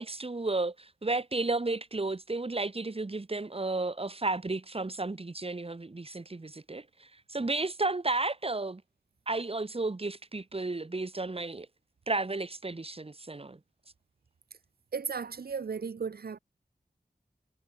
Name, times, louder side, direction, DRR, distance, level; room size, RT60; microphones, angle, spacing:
voice 1, 0.0-8.8 9.3-11.7 12.1-13.6, right 2 dB, 35° right, 1.3 m, -33 dB
voice 2, 14.9-16.4, right 5 dB, 70° right, 0.7 m, -35 dB
wide cardioid pair, 75°, 16 cm